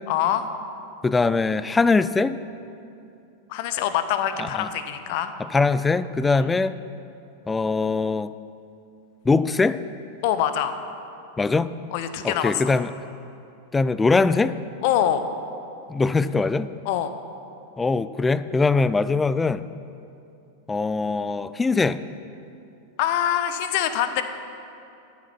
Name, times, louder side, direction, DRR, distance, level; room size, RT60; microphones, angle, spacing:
voice 1, 0.1-0.5 3.5-5.3 10.2-10.7 11.9-12.6 14.8-15.3 16.8-17.1 23.0-24.2, left 10 dB, 50° left, 10 dB, 0.7 m, -24 dB
voice 2, 1.0-2.3 4.4-4.7 5.4-6.8 7.5-8.3 9.2-9.8 11.4-11.7 12.2-12.9 13.7-14.6 15.9-16.7 17.8-19.7 20.7-22.0, left 3 dB, 10° left, 15 dB, 0.3 m, -22 dB
12.5 x 7.4 x 5.9 m, 2.7 s
figure-of-eight pair, 90°, 0 cm